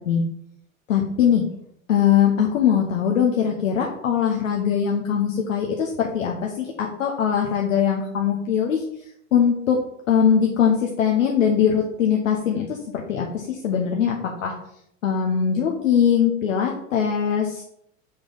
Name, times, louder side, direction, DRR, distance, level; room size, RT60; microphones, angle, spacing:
voice 1, 0.9-1.4 1.9-8.8 9.3-9.8 10.1-12.8 13.1-14.5 15.0-17.7, left 8 dB, 70° left, 0 dB, 1.0 m, -21 dB
5.7 x 4.8 x 3.9 m, 0.74 s
figure-of-eight pair, 90°, 40 cm